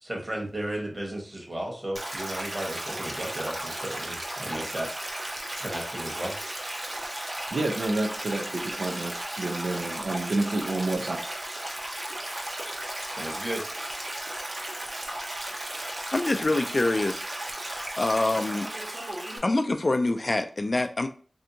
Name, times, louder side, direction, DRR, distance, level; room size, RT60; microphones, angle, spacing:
voice 1, 0.0-4.9 5.6-6.3 13.1-13.6, right 1 dB, 30° right, 1.1 m, -34 dB
Stream, 1.9-19.4, right 1 dB, 50° right, 0.7 m, -35 dB
voice 2, 7.5-11.2, right 2 dB, 80° right, 0.5 m, -29 dB
voice 3, 16.1-17.2 18.0-18.7 19.4-21.1, left 2 dB, 50° left, 0.3 m, -25 dB
3.3 x 2.7 x 2.7 m
wide cardioid pair, 65°, 0 cm